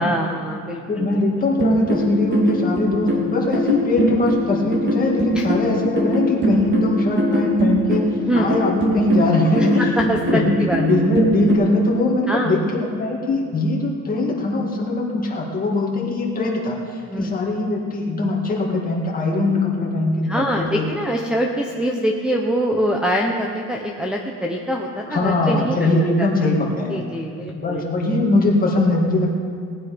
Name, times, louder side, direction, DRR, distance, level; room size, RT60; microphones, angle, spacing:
voice 1, 0.0-1.2 5.3-5.5 8.2-8.5 9.8-10.8 12.3-12.6 16.0-16.1 17.1-17.3 20.3-25.8 26.9-27.8, equal, 5° right, 1 dB, 0.7 m, -24 dB
voice 2, 0.9-9.9 10.3-20.9 25.1-27.0 27.5-29.3, left 2 dB, 25° left, -2 dB, 2.1 m, -21 dB
sound 1, 1.6-11.5, right 1 dB, 35° right, 2.1 m, -22 dB
19.0 x 10.0 x 5.1 m, 2.3 s
cardioid pair, 165°, 32 cm